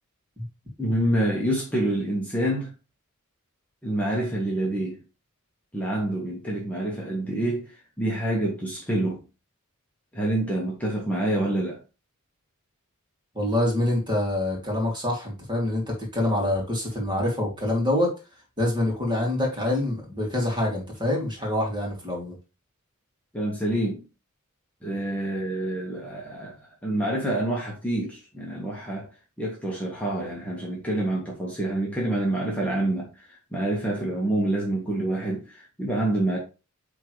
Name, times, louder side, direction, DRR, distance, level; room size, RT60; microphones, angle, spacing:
voice 1, 0.8-2.7 3.8-5.0 5.7-9.2 10.1-11.8 23.3-24.0 24.8-29.1 29.4-36.4, right 1 dB, 5° left, 1.4 m, -27 dB
voice 2, 13.3-18.1 18.6-22.3, left 1 dB, 20° right, 2.6 m, -26 dB
8.6 x 3.8 x 3.2 m
head